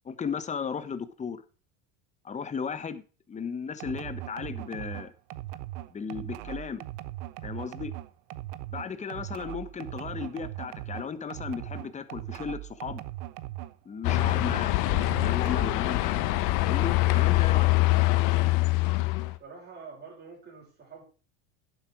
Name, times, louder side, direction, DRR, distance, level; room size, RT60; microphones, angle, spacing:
voice 1, 0.0-1.4 2.2-3.0 3.3-5.1 5.9-6.8 7.4-7.9 8.7-13.0 13.8-14.8 15.1-16.3 16.6-17.7, left 6 dB, 20° left, 1.2 m, -35 dB
sound 1, 3.8-13.8 14.1-15.9, right 15 dB, 70° right, 1.0 m, -39 dB
sound 2, 14.0-19.4, left 19 dB, 65° left, 1.2 m, -24 dB
voice 2, 19.4-21.0, right 5 dB, 30° right, 6.4 m, -46 dB
10.5 x 8.2 x 4.9 m
supercardioid pair, 120°, 34 cm